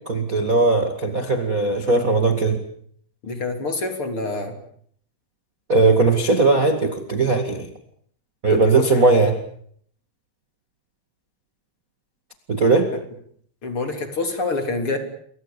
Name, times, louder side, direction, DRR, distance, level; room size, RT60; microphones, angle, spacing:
voice 1, 0.0-2.6 5.7-7.7 8.4-9.3 12.5-12.9, right 3 dB, 50° right, 6 dB, 1.0 m, -18 dB
voice 2, 3.2-4.5 8.5-9.1 12.9-13.0 13.6-15.0, left 3 dB, 30° left, 6 dB, 3.6 m, -26 dB
28.5 x 24.0 x 7.2 m, 0.64 s
omnidirectional pair, 5.6 m